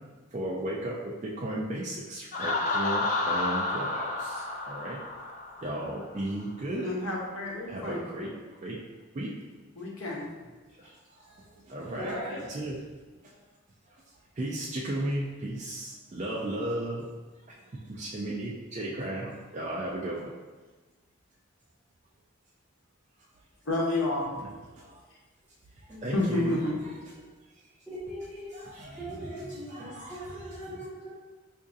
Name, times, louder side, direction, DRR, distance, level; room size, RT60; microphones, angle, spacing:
voice 1, 0.3-5.0 5.6-6.9 7.7-8.8 9.1-9.3 10.8-12.8 13.2-13.4 13.9-14.0 14.4-17.1 17.6-20.3 24.4-24.5 24.8-25.0 25.8-26.9 27.2-27.7 28.5-29.3 29.7-30.4, right 1 dB, 35° right, -4 dB, 0.3 m, -35 dB
Laughter, 2.3-6.0, left 2 dB, 35° left, 0.4 m, -30 dB
voice 2, 6.8-8.0 9.8-10.3 23.7-24.3 26.1-26.8, left 2 dB, 85° left, -3 dB, 0.9 m, -29 dB
voice 3, 11.9-12.4 25.9-26.0 27.9-31.1, equal, 10° right, -15 dB, 1.1 m, -40 dB
4.7 x 2.5 x 2.5 m, 1.3 s
head